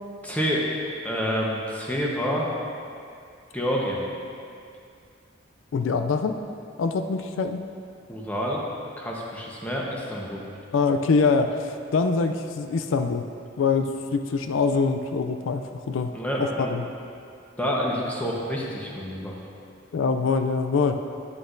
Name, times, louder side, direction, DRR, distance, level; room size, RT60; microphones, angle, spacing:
voice 1, 0.2-0.7 1.0-2.4 3.5-4.0 8.1-8.6 9.0-10.4 16.1-16.7 17.6-19.3, equal, 10° left, -4 dB, 1.0 m, -28 dB
voice 2, 5.7-6.4 6.8-7.6 10.7-13.3 13.6-16.9 19.9-21.0, left 4 dB, 80° left, 7 dB, 0.4 m, -24 dB
9.6 x 8.5 x 2.6 m, 2.4 s
head